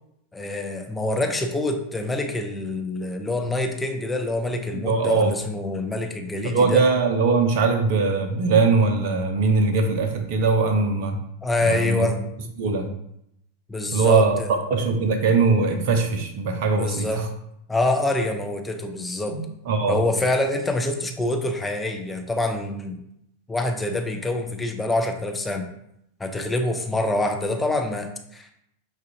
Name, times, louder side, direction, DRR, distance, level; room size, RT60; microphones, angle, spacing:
voice 1, 0.3-6.8 11.4-12.2 13.7-14.5 16.7-17.2 17.7-19.4 19.9-23.0 23.5-25.7 26.2-28.5, left 2 dB, 10° left, 4 dB, 0.5 m, -26 dB
voice 2, 4.7-5.3 6.4-11.2 11.6-12.1 12.6-12.9 13.9-17.3 19.3-20.0, right 4 dB, 50° right, 5 dB, 0.6 m, -21 dB
5.7 x 2.4 x 2.8 m, 0.77 s
figure-of-eight pair, 90°, 0 cm